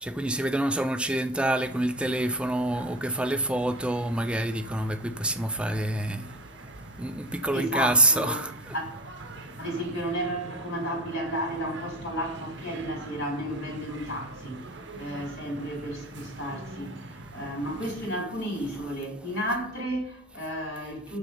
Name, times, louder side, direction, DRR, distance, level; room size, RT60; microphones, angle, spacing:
voice 1, 0.0-6.3 7.0-8.7, right 1 dB, 5° right, 0.3 m, -27 dB
sound 1, 1.6-18.1, right 2 dB, 70° right, 1.0 m, -43 dB
voice 2, 7.5-8.4 8.7-8.9 9.6-14.6 15.0-21.2, equal, 75° left, 4.4 m, -33 dB
7.0 x 6.8 x 5.6 m
head